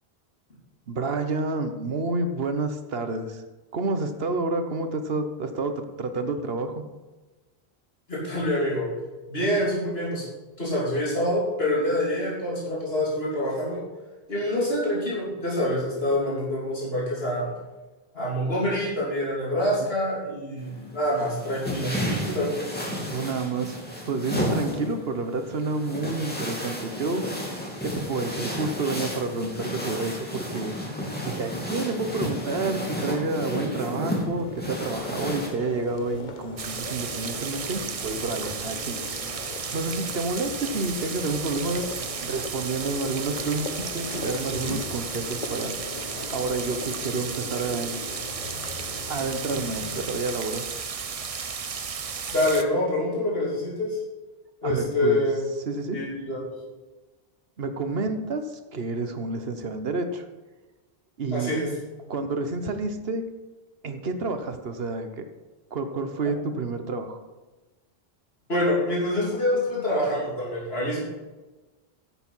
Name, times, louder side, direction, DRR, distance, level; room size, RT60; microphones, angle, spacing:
voice 1, 0.9-3.4 3.7-6.8 19.8-19.9 23.1-23.8 24.1-27.3 27.8-30.8 31.2-39.0 39.7-41.8 42.2-45.8 46.3-48.0 49.1-50.7 54.6-55.2 55.6-56.0 57.6-60.2 61.2-61.5 62.1-63.2 63.8-65.2 65.7-67.2, right 3 dB, 75° right, 8 dB, 1.3 m, -29 dB
voice 2, 8.1-8.9 9.3-10.3 10.6-13.8 14.3-17.5 18.1-22.5 52.3-54.0 54.6-55.5 55.9-56.4 61.3-61.7 68.5-71.0, left 1 dB, 75° left, -6 dB, 3.4 m, -26 dB
sound 1, 20.6-35.5, equal, 10° left, 2.6 m, -32 dB
sound 2, 34.1-50.1, left 3 dB, 50° left, 1.2 m, -39 dB
sound 3, 36.6-52.6, right 6 dB, 40° right, 0.7 m, -34 dB
10.5 x 7.9 x 5.6 m, 1.2 s
omnidirectional pair, 1.0 m